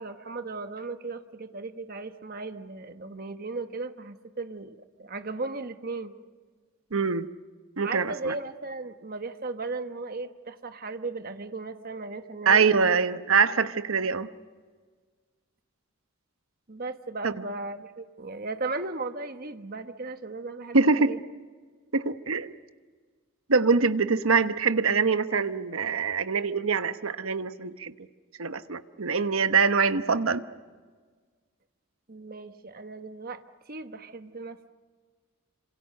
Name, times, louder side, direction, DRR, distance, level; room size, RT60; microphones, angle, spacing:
voice 1, 0.0-6.1 7.8-13.0 16.7-21.2 32.1-33.4 33.7-34.7, right 3 dB, 45° right, 8 dB, 1.2 m, -36 dB
voice 2, 6.9-7.3 7.8-8.3 12.5-14.3 17.2-17.3 20.7-21.1 21.9-22.5 23.5-27.9 28.4-30.4, right 5 dB, 85° right, 11 dB, 1.1 m, -24 dB
27.5 x 26.5 x 6.6 m, 1.5 s
head